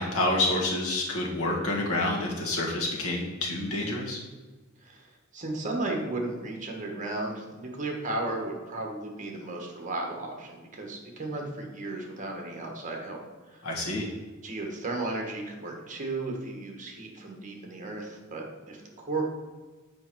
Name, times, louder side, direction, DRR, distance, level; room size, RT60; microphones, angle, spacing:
voice 1, 0.0-4.2 13.6-14.1, left 2 dB, 70° left, -1 dB, 1.6 m, -28 dB
voice 2, 4.8-13.2 13.5-13.7 14.4-19.3, right 2 dB, 35° right, 1 dB, 1.4 m, -34 dB
6.7 x 5.2 x 4.6 m, 1.3 s
head